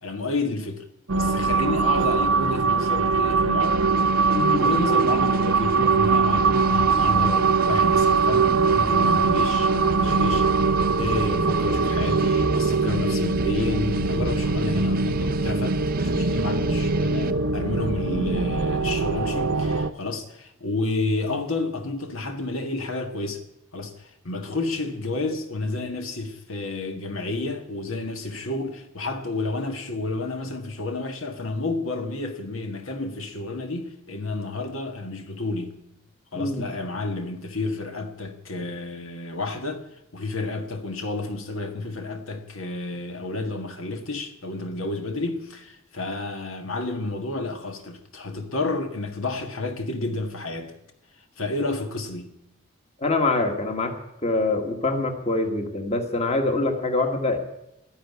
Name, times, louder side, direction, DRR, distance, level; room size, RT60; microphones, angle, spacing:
voice 1, 0.0-0.8 1.1-3.8 4.2-23.4 23.7-35.8 36.3-39.8 40.1-50.7 51.4-52.3, left 2 dB, 80° left, 1.7 m, -30 dB
sound 1, 1.1-19.9, right 4 dB, 80° right, 0.9 m, -22 dB
sound 2, 3.6-17.3, right 3 dB, 45° right, 0.7 m, -33 dB
voice 2, 4.3-4.7 36.4-36.7 53.0-53.9 54.2-57.4, left 2 dB, 30° left, 1.7 m, -24 dB
12.5 x 11.0 x 9.5 m
head